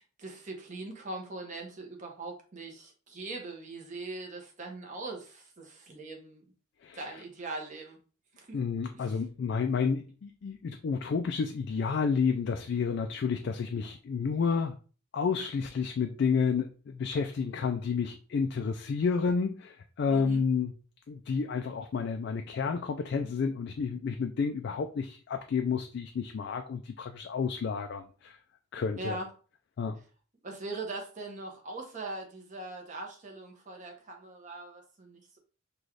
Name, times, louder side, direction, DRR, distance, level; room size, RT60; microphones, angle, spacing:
voice 1, 0.0-6.5 6.9-8.0 8.4-8.6 8.9-9.2 20.1-20.4 29.0-29.3 30.4-35.4, right 2 dB, 35° right, 1 dB, 0.9 m, -41 dB
voice 2, 8.5-14.8 15.1-20.7 21.1-28.4 28.7-29.2 29.8-30.0, left 5 dB, 55° left, 5 dB, 0.3 m, -30 dB
3.9 x 2.3 x 3.1 m, 0.38 s
head